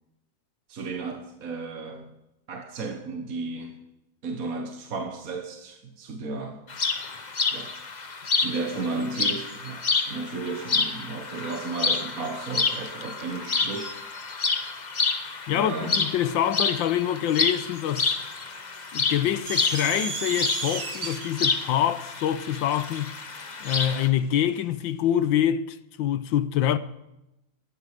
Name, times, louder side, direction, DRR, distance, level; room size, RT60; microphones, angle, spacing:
voice 1, 0.7-2.1 2.5-3.8 4.2-6.6 7.5-7.7 8.4-14.1 15.5-16.0, right 3 dB, 50° right, 1.5 m, -34 dB
sound 1, 6.7-24.1, left 4 dB, 40° left, 0.6 m, -29 dB
voice 2, 15.5-18.1 18.9-23.1 23.6-26.8, left 10 dB, 75° left, 1.4 m, -25 dB
sound 2, 19.5-24.0, right 4 dB, 30° right, 0.7 m, -34 dB
15.0 x 13.0 x 4.9 m
omnidirectional pair, 2.2 m